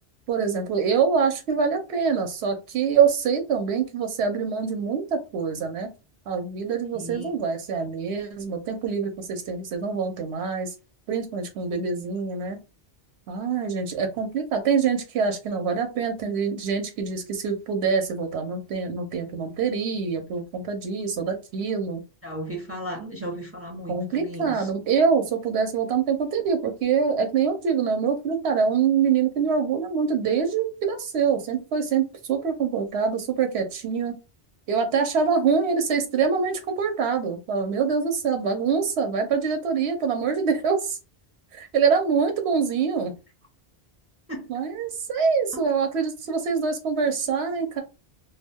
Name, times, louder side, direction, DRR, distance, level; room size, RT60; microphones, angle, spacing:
voice 1, 0.3-5.9 6.3-10.7 11.1-12.6 13.3-22.0 23.9-34.2 34.7-41.0 41.5-43.1 44.5-47.8, right 6 dB, 90° right, 0.9 m, -25 dB
voice 2, 6.9-7.3 22.2-24.6 44.3-44.4, right 1 dB, 15° right, 0.6 m, -35 dB
2.3 x 2.2 x 3.4 m
omnidirectional pair, 1.1 m